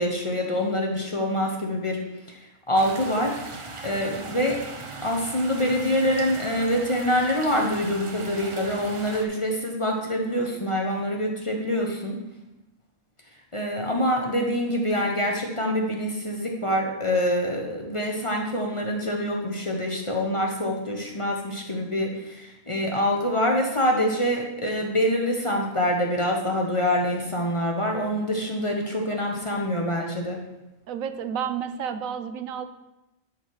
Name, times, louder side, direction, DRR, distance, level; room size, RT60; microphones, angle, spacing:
voice 1, 0.0-2.0 2.3-2.4 2.7-4.6 5.0-12.2 13.5-30.4, equal, 25° left, 1 dB, 0.9 m, -25 dB
sound 1, 2.7-9.2, right 3 dB, 40° right, 0.4 m, -39 dB
voice 2, 30.9-32.6, right 8 dB, 80° right, 10 dB, 1.1 m, -31 dB
10.5 x 4.5 x 4.7 m, 0.96 s
omnidirectional pair, 1.4 m